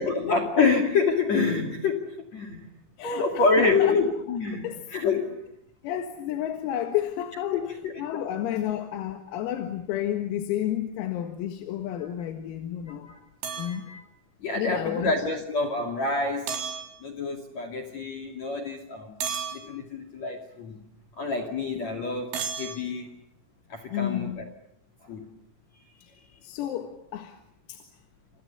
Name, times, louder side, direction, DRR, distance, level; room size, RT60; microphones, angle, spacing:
voice 1, 0.0-2.7 3.0-5.5 7.5-7.9 12.9-13.2 13.7-14.0 14.4-16.6 17.0-19.2 19.5-20.8 21.2-23.2 23.7-24.4 25.0-25.3 26.3-26.4, left 4 dB, 40° left, 7 dB, 2.9 m, -27 dB
voice 2, 3.0-4.0 4.6-4.8 5.8-13.1 13.6-13.9 14.6-15.4 23.9-24.4 26.0-26.1 26.4-27.4 27.7-27.9, left 11 dB, 90° left, 5 dB, 4.5 m, -31 dB
sound 1, 13.4-13.7 16.5-16.9 19.2-19.6 22.3-22.8, right 7 dB, 65° right, 6.4 m, -32 dB
29.0 x 29.0 x 7.0 m, 0.75 s
omnidirectional pair, 6.0 m